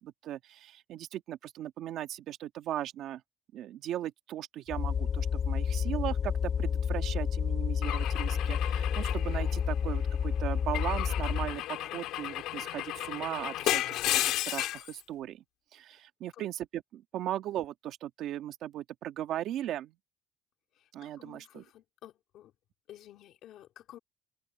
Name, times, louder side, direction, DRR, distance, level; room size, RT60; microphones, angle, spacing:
voice 1, 0.0-3.2 3.5-15.4 15.7-20.0 20.9-21.6, right 12 dB, 65° right, 1.9 m, -38 dB
sound 1, 4.7-11.6, left 7 dB, 35° left, 3.1 m, -30 dB
Car / Engine / Glass, 7.8-10.0 10.7-14.9, left 15 dB, 85° left, 2.8 m, -33 dB
voice 2, 20.8-22.5 22.9-24.0, left 12 dB, 65° left, 3.5 m, -52 dB
open air
cardioid pair, 160°, 0 cm